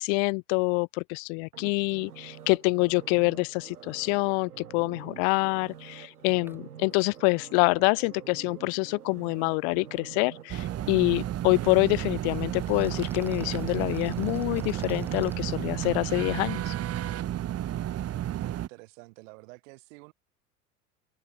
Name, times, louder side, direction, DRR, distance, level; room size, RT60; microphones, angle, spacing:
voice 1, 0.0-16.7, left 40 dB or more, 45° left, 0.7 m, -26 dB
sound 1, 1.5-16.6 17.0-17.1, right 9 dB, 80° right, 1.5 m, -47 dB
sound 2, 6.5-6.6 6.9-7.0 7.3-7.4 12.3-15.3, right 1 dB, 5° right, 2.2 m, -48 dB
sound 3, 10.5-18.7, right 12 dB, 35° right, 1.8 m, -32 dB
voice 2, 18.4-20.1, right 26 dB, 60° right, 4.8 m, -49 dB
figure-of-eight pair, 75°, 44 cm